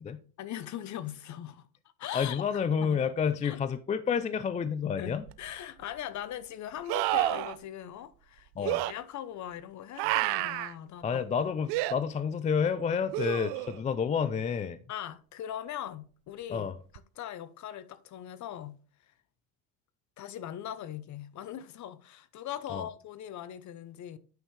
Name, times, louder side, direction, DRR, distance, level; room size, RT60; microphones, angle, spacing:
voice 1, 0.4-1.7 2.0-2.4 2.8-3.0 3.4-3.6 5.0-11.2 14.9-16.7 17.2-18.8 20.2-24.2, left 11 dB, 40° left, 0.8 m, -40 dB
voice 2, 2.1-5.2 8.6-8.8 11.0-14.8 16.5-16.8 22.7-22.9, left 6 dB, 20° left, 0.3 m, -29 dB
sound 1, 5.3-5.4 6.9-7.6 8.6-8.9 10.0-10.7 11.7-11.9 13.1-13.8 17.0-17.1, right 16 dB, 65° right, 0.6 m, -29 dB
9.0 x 5.5 x 3.2 m
supercardioid pair, 95°, 43 cm